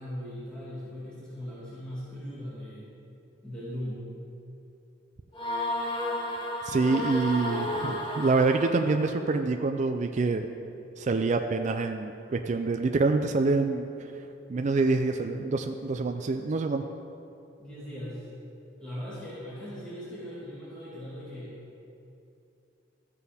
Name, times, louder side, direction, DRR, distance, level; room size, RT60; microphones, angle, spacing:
voice 1, 0.0-2.9 3.4-4.1 14.7-15.2 17.6-18.3 18.8-21.6, equal, 5° left, -11 dB, 2.5 m, -39 dB
sound 1, 5.3-9.2, left 1 dB, 25° left, 1.2 m, -32 dB
voice 2, 6.6-10.5 11.0-13.9 14.5-16.8, right 3 dB, 40° right, 5 dB, 0.4 m, -26 dB
14.5 x 6.8 x 3.5 m, 2.7 s
head